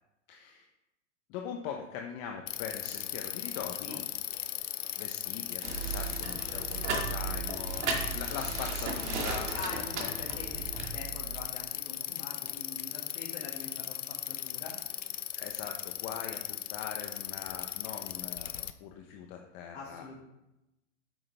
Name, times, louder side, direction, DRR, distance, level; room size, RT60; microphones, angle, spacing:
voice 1, 0.3-0.7 1.3-4.0 5.0-9.5 10.0-10.1 10.8-10.9 15.4-18.5 18.8-20.2, left 7 dB, 35° left, 3 dB, 0.8 m, -42 dB
Bicycle, 2.5-18.7, left 11 dB, 80° left, 0.7 m, -38 dB
sound 1, 5.6-11.5, right 12 dB, 40° right, 0.6 m, -41 dB
sound 2, 5.6-10.9, right 3 dB, 65° right, 2.3 m, -37 dB
voice 2, 9.5-14.8 19.7-20.2, left 4 dB, 55° left, -7 dB, 2.1 m, -45 dB
8.6 x 6.5 x 3.4 m, 0.93 s
hypercardioid pair, 115°, 37 cm